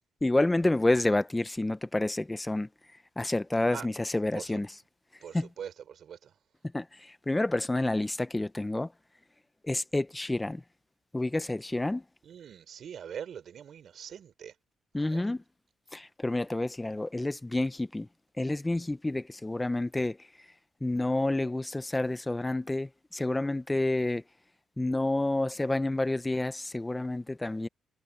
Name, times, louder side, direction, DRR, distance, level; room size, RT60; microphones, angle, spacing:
voice 1, 0.2-2.7 3.2-4.8 5.3-5.5 6.7-8.9 9.6-10.6 11.1-12.0 14.9-15.4 15.9-18.1 18.4-20.5 20.8-24.2 24.8-27.7, left 2 dB, 15° left, 0.8 m, -29 dB
voice 2, 3.5-3.9 4.3-4.6 5.2-6.3 12.2-14.5 15.0-15.3, right 8 dB, 60° right, 4.1 m, -43 dB
cardioid pair, 90°, 0 cm